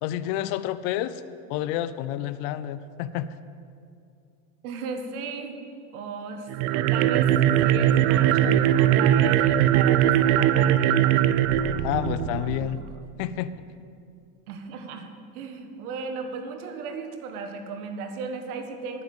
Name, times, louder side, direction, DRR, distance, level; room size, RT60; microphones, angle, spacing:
voice 1, 0.0-1.2 1.5-3.3 11.8-12.8 13.2-13.5, left 12 dB, 45° left, 13 dB, 0.4 m, -29 dB
voice 2, 4.6-5.6 5.9-11.2 14.5-19.0, right 4 dB, 70° right, 6 dB, 1.6 m, -36 dB
sound 1, 6.5-12.8, right 11 dB, 50° right, 0.6 m, -20 dB
9.7 x 7.1 x 8.6 m, 2.4 s
supercardioid pair, 125°, 46 cm